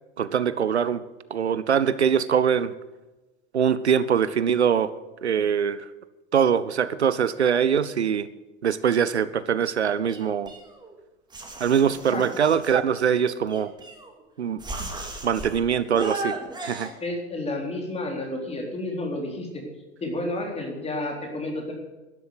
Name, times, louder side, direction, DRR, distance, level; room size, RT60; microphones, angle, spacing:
voice 1, 0.2-1.0 1.3-2.7 3.5-4.9 5.2-5.8 6.3-8.3 8.6-10.5 11.6-13.7 14.4-14.6 15.2-16.4 16.6-16.9, right 7 dB, 75° right, 16 dB, 0.7 m, -23 dB
sound 1, 10.1-11.0 11.3-12.8 13.5-14.2 14.6-15.6 15.9-16.9, right 2 dB, 15° right, 2.9 m, -36 dB
voice 2, 17.0-19.6 20.0-21.7, left 2 dB, 20° left, 1 dB, 3.9 m, -31 dB
12.0 x 11.0 x 7.9 m, 1.1 s
figure-of-eight pair, 85°, 33 cm